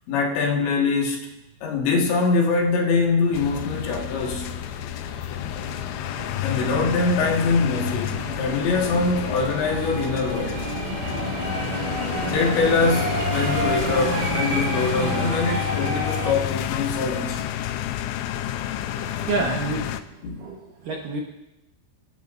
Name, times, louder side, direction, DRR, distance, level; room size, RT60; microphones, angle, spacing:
voice 1, 0.1-1.3 1.6-4.6 6.4-10.7 12.3-17.4 20.2-20.5, left 4 dB, 65° left, 3.7 m, -23 dB
sound 1, 3.2-16.3, right 1 dB, 65° right, 6.7 m, -30 dB
sound 2, 3.3-20.0, left 11 dB, 85° left, 2.5 m, -30 dB
voice 2, 18.9-19.9 20.3-21.2, right 3 dB, 90° right, 1.8 m, -29 dB
29.0 x 12.5 x 2.6 m
omnidirectional pair, 5.9 m